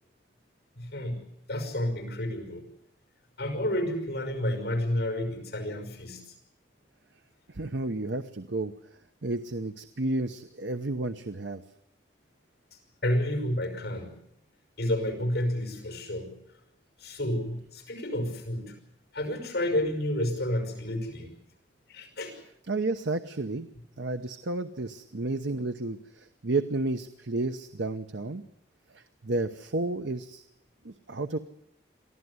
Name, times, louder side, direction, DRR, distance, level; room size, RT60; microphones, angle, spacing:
voice 1, 0.8-2.7 3.4-6.3 13.0-14.1 14.8-16.4 17.0-18.8 19.1-21.3 21.9-22.3, left 1 dB, 60° left, 6 dB, 5.6 m, -30 dB
voice 2, 7.5-8.7 9.2-11.6 22.7-23.7 24.0-28.4 28.9-30.4 30.8-31.4, right 2 dB, 85° right, 9 dB, 1.0 m, -31 dB
23.5 x 15.0 x 9.6 m, 0.75 s
head